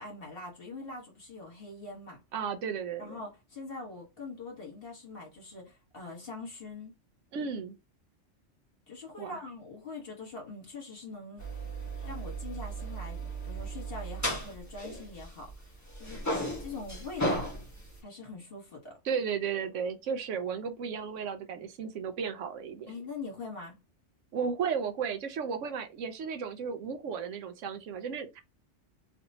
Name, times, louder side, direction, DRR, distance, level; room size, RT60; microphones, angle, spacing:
voice 1, 0.0-2.2 3.0-6.9 8.9-11.4 12.0-17.5 18.0-19.0 22.9-23.8, left 3 dB, 50° left, 1.5 m, -43 dB
voice 2, 2.3-3.2 7.3-7.7 9.2-9.4 19.0-22.9 24.3-28.4, right 6 dB, 80° right, 1.0 m, -34 dB
sound 1, 11.4-15.6 15.9-18.0, right 1 dB, 15° left, 1.0 m, -35 dB
3.2 x 2.9 x 2.7 m
omnidirectional pair, 1.3 m